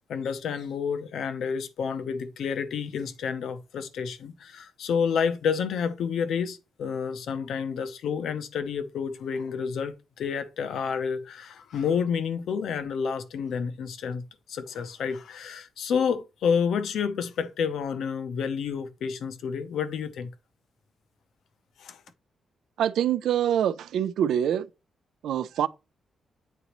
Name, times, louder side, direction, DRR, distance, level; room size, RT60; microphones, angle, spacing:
voice 1, 0.1-20.3 21.8-22.0, left 6 dB, 75° left, 0.6 m, -29 dB
voice 2, 22.8-24.7 25.2-25.7, right 10 dB, 85° right, 0.3 m, -25 dB
8.2 x 4.0 x 3.0 m
wide cardioid pair, 150°, 0 cm